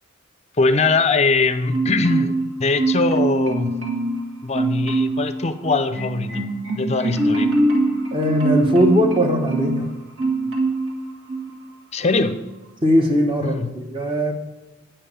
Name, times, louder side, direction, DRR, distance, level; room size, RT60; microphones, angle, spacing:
voice 1, 0.6-2.3 2.6-3.8 4.4-6.4 6.7-7.5 11.9-12.4 13.4-13.7, left 3 dB, 30° left, 12 dB, 0.6 m, -21 dB
Marimba xylophone, 1.7-2.5 2.8-4.2 4.5-5.3 5.6-9.8 10.2-10.9 11.3-11.5, right 2 dB, 65° right, 2.0 m, -22 dB
voice 2, 8.1-9.9 12.8-14.3, equal, 25° right, 3 dB, 1.2 m, -19 dB
8.9 x 5.7 x 6.8 m, 1.1 s
head